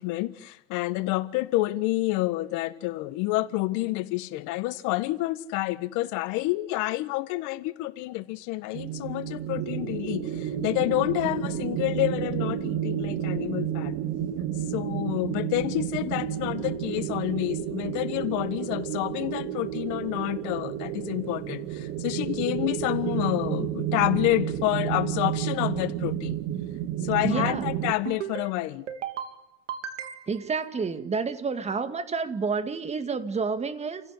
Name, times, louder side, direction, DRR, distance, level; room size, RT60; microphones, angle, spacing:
voice 1, 0.0-14.0 14.7-26.4 27.0-28.9, left 18 dB, 55° left, 1.6 m, -28 dB
sound 1, 8.7-27.9, right 10 dB, 50° right, 2.3 m, -31 dB
voice 2, 27.2-27.7 30.3-34.0, right 5 dB, 20° right, 2.2 m, -29 dB
sound 2, 27.2-27.7 28.1-28.5 28.9-29.3 29.7-30.5, right 9 dB, 90° right, 3.1 m, -35 dB
29.0 x 16.5 x 10.0 m
supercardioid pair, 115°, 36 cm